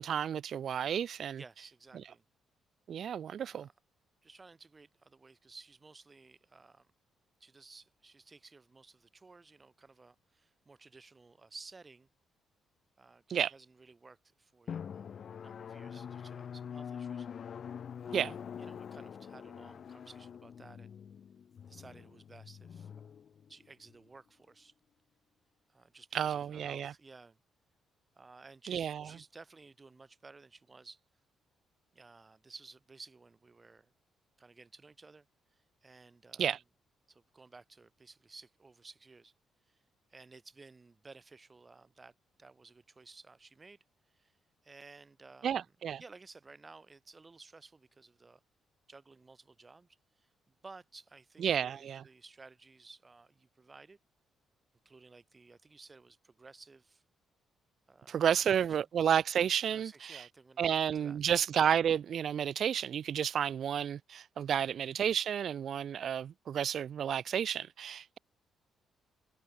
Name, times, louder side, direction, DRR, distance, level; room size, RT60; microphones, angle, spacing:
voice 1, 0.0-1.4 2.9-3.7 13.3-13.5 18.1-18.3 26.1-26.9 28.7-29.1 36.4-36.6 45.4-46.0 51.4-52.0 58.1-60.2 60.6-68.2, right 8 dB, 60° right, 0.3 m, -31 dB
voice 2, 1.3-2.2 3.4-3.7 4.2-6.9 7.4-12.1 13.0-17.3 17.6-17.7 18.0-20.9 21.7-23.1 23.5-24.7 25.7-27.4 28.1-31.0 31.9-33.9 34.4-35.3 35.5-36.5 37.1-39.3 39.7-39.8 40.1-42.1 42.4-43.8 44.1-44.4 44.6-45.7 46.0-48.4 48.9-49.9 50.2-54.0 54.8-57.0 57.9-58.8 59.7-61.3, right 3 dB, 25° right, 3.1 m, -56 dB
Drum, 14.7-24.0, left 7 dB, 55° left, 1.9 m, -45 dB
cardioid pair, 90°, 0 cm